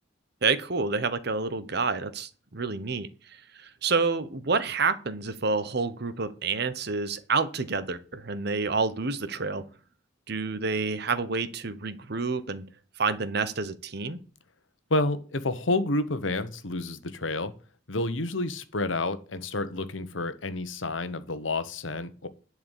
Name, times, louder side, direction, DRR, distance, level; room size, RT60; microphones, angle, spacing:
voice 1, 0.4-3.1 3.5-9.6 10.3-12.7 13.0-14.2, right 4 dB, 55° right, 13 dB, 1.1 m, -28 dB
voice 2, 14.9-17.5 17.9-22.3, left 2 dB, 85° left, 12 dB, 1.2 m, -29 dB
11.0 x 4.8 x 8.2 m, 0.38 s
head